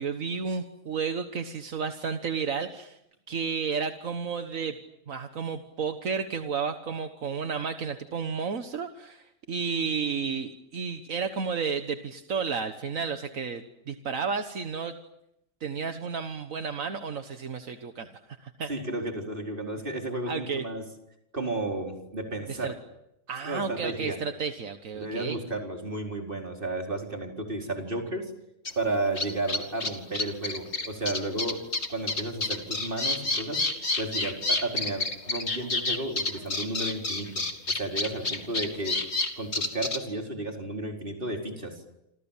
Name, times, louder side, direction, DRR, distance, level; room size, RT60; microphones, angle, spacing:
voice 1, 0.0-3.0 3.3-4.8 5.1-14.9 15.6-18.7 20.3-20.7 22.5-22.7 23.3-25.4, right 5 dB, 75° right, 7 dB, 1.8 m, -32 dB
voice 2, 18.7-20.8 21.3-22.7 23.4-24.2 24.9-28.3 28.8-31.6 31.9-33.7 34.0-39.0 39.4-41.8, right 2 dB, 40° right, 2 dB, 4.7 m, -33 dB
sound 1, 28.6-28.7 29.2-40.0, left 3 dB, 55° left, 3.0 m, -28 dB
28.0 x 26.5 x 7.4 m, 0.81 s
omnidirectional pair, 1.4 m